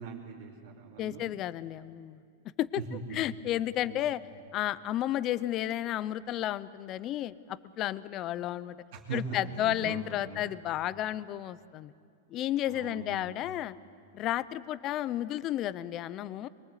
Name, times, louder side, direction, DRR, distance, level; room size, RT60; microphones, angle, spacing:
voice 1, 0.0-1.2 2.7-3.2 3.9-4.1 8.9-9.2 9.5-10.4 12.7-13.3, right 5 dB, 55° right, -4 dB, 2.9 m, -41 dB
voice 2, 1.0-2.2 2.6-2.8 3.1-4.2 4.5-8.8 9.1-11.9 12.3-13.8 14.1-16.5, left 13 dB, 30° left, 17 dB, 0.6 m, -32 dB
23.5 x 23.5 x 8.2 m, 2.3 s
supercardioid pair, 160°, 0 cm